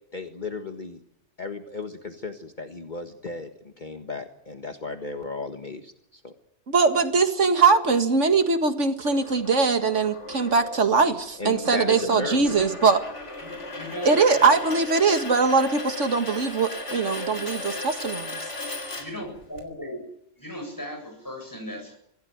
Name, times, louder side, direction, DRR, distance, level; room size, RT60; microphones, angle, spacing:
voice 1, 0.1-1.0 1.4-6.3 11.4-12.6, left 3 dB, 40° left, 6 dB, 1.7 m, -35 dB
voice 2, 6.7-13.0 14.1-18.4, right 4 dB, 85° right, 8 dB, 2.2 m, -21 dB
sound 1, 9.0-19.6, left 2 dB, 75° left, 4.1 m, -37 dB
voice 3, 12.1-12.6 13.4-14.8 19.0-20.0 20.4-22.0, equal, 15° left, 3 dB, 7.7 m, -37 dB
25.0 x 17.0 x 9.5 m, 0.74 s
omnidirectional pair, 1.2 m